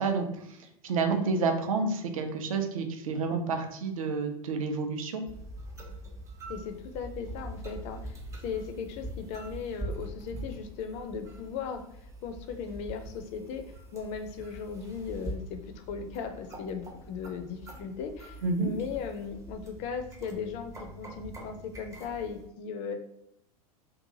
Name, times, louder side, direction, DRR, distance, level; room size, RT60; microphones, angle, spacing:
voice 1, 0.0-5.2 18.4-18.7, right 4 dB, 65° right, 5 dB, 0.5 m, -29 dB
sound 1, 5.3-22.5, right 1 dB, 15° right, 0.5 m, -43 dB
voice 2, 6.5-11.8 12.2-13.6 13.9-23.0, left 6 dB, 35° left, 7 dB, 0.4 m, -37 dB
2.6 x 2.3 x 2.6 m, 0.72 s
figure-of-eight pair, 85°, 19 cm